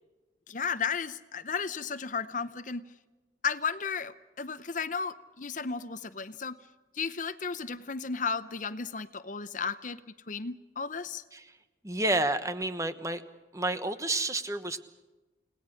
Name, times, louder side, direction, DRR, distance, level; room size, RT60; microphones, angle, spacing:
voice 1, 0.5-2.8 3.4-6.6 6.9-10.0 10.3-11.2, left 5 dB, 45° left, 13 dB, 0.8 m, -34 dB
voice 2, 11.8-13.2 13.5-14.8, right 2 dB, 15° right, 10 dB, 1.2 m, -30 dB
30.0 x 19.0 x 6.5 m, 1.1 s
head